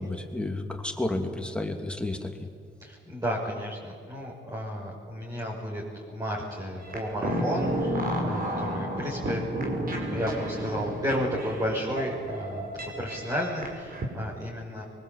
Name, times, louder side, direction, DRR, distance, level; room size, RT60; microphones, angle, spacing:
voice 1, 0.0-2.5, left 2 dB, 5° left, 3 dB, 3.1 m, -31 dB
voice 2, 2.8-5.8 6.1-9.4 10.1-12.6 13.0-14.8, equal, 20° right, -6 dB, 6.1 m, -32 dB
sound 1, 6.8-14.0, right 1 dB, 45° right, 5.5 m, -32 dB
24.5 x 23.0 x 8.6 m, 2.1 s
cardioid pair, 90°, 20 cm